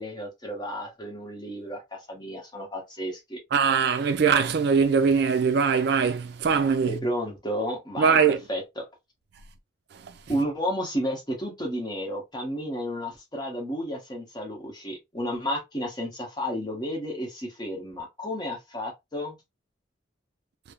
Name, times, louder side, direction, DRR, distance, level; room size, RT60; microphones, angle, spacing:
voice 1, 0.0-3.4 6.8-8.8 10.3-19.4, equal, 20° left, 0.9 m, -32 dB
voice 2, 3.5-7.0 8.0-8.4, right 6 dB, 55° right, 0.3 m, -21 dB
3.0 x 2.0 x 2.3 m
head